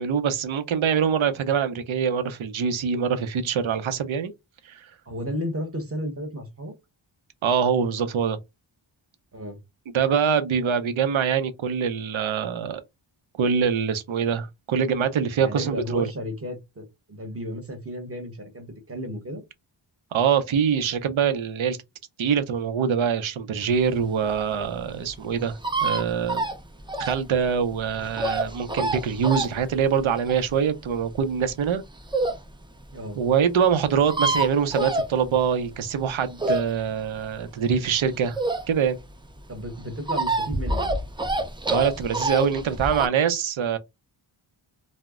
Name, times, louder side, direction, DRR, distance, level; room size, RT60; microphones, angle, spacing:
voice 1, 0.0-4.3 4.7-4.9 7.4-8.4 9.9-12.8 13.4-16.1 20.1-21.8 22.2-26.5 27.0-31.8 33.2-38.4 38.7-39.0 41.7-43.8, right 7 dB, 75° right, 0.6 m, -24 dB
voice 2, 5.1-6.7 9.3-9.6 15.4-19.4 32.9-33.2 39.5-41.0, equal, 30° right, 0.9 m, -33 dB
sound 1, 23.8-32.5 32.9-33.0 33.2-33.3 33.5-33.6 33.8-35.6 36.0-39.0 39.3-43.1, right 2 dB, 10° right, 0.4 m, -27 dB
2.1 x 2.0 x 3.5 m
wide cardioid pair, 75°, 48 cm